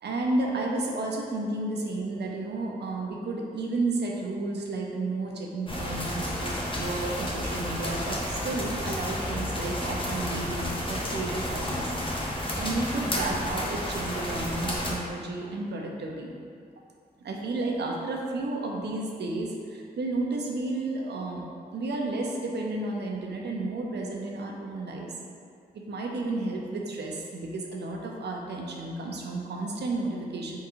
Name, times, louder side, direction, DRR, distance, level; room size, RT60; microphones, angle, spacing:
voice 1, 0.0-11.9 12.6-16.3 17.2-25.1 25.7-30.6, right 2 dB, 90° right, 0 dB, 0.6 m, -32 dB
sound 1, 5.7-14.9, left 1 dB, 30° left, 0.8 m, -31 dB
4.5 x 3.7 x 3.0 m, 2.3 s
wide cardioid pair, 90°, 17 cm